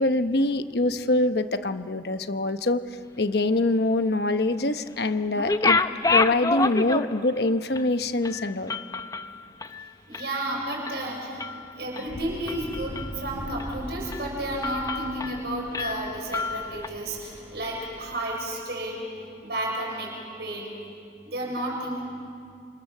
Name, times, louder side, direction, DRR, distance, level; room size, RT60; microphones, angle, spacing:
voice 1, 0.0-2.8 3.2-5.8 6.1-8.8, left 2 dB, 60° left, 9 dB, 1.0 m, -24 dB
sound 1, 5.4-7.4 7.7-7.9 8.2-10.4 10.7-11.0 11.4-12.0 12.5-13.2 13.6-13.7 14.1-14.3 14.6-15.4 15.7-16.9, left 3 dB, 20° left, 0.7 m, -28 dB
voice 2, 10.1-11.3 11.8-19.0 19.4-20.1 20.4-20.7 21.2-22.0, right 1 dB, 60° right, -1 dB, 6.4 m, -32 dB
sound 2, 12.0-18.2, equal, 15° right, 5.8 m, -42 dB
27.5 x 27.0 x 7.4 m, 2.4 s
head